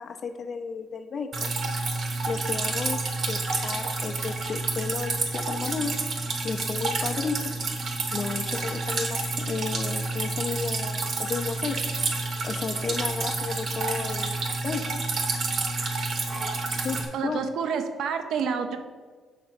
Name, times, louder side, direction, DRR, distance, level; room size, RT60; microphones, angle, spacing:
voice 1, 0.0-1.5 2.3-6.0 6.4-7.5 8.1-11.8 12.4-14.4 14.6-15.1 16.8-17.4, left 5 dB, 50° left, 7 dB, 0.5 m, -33 dB
Drip, 1.3-17.0, right 3 dB, 55° right, 1.1 m, -29 dB
voice 2, 17.1-18.8, right 6 dB, 75° right, 7 dB, 0.6 m, -29 dB
6.5 x 3.8 x 5.9 m, 1.5 s
cardioid pair, 90°, 0 cm